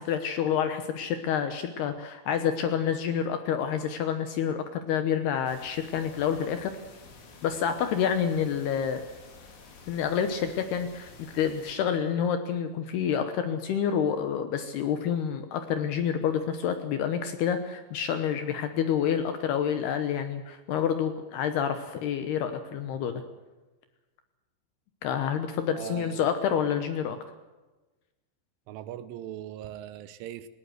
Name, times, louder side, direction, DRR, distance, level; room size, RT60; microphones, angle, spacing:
voice 1, 0.0-6.7 7.4-9.0 9.9-23.2 25.0-27.2, left 8 dB, 70° left, 8 dB, 2.7 m, -28 dB
sound 1, 5.5-11.8, left 4 dB, 85° left, 6.0 m, -51 dB
voice 2, 25.7-26.3 28.7-30.5, right 11 dB, 80° right, 13 dB, 3.4 m, -40 dB
19.0 x 19.0 x 7.9 m, 1.2 s
omnidirectional pair, 5.6 m